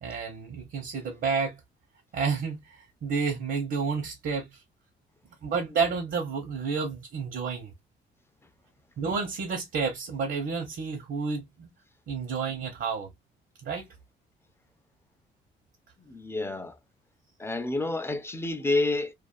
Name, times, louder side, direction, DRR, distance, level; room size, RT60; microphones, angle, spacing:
voice 1, 0.0-1.6 2.1-4.6 5.4-7.7 9.0-11.7 12.1-13.1 13.6-13.9, right 5 dB, 65° right, 0.9 m, -30 dB
voice 2, 16.1-16.8 17.4-19.1, left 2 dB, 10° left, 0.5 m, -29 dB
2.5 x 2.4 x 2.4 m
cardioid pair, 90°, 20 cm